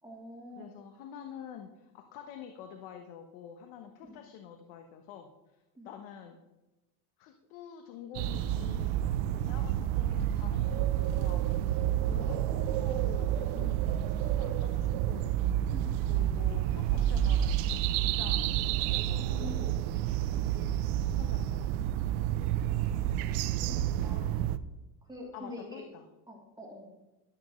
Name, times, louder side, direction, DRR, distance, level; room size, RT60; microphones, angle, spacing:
voice 1, 0.0-0.7 4.1-4.2 5.8-5.9 12.1-12.2 15.7-15.9 19.2-20.4 22.6-24.3 25.1-25.8 26.3-27.0, left 2 dB, 10° right, -3 dB, 3.0 m, -47 dB
voice 2, 0.5-6.4 7.2-9.0 9.3-15.3 16.1-18.6 18.9-19.3 21.0-21.8 25.3-26.0, left 8 dB, 75° left, 5 dB, 1.3 m, -48 dB
sound 1, 8.1-24.6, right 11 dB, 85° right, 0.8 m, -29 dB
13.0 x 11.5 x 3.2 m, 1.0 s
supercardioid pair, 115°, 48 cm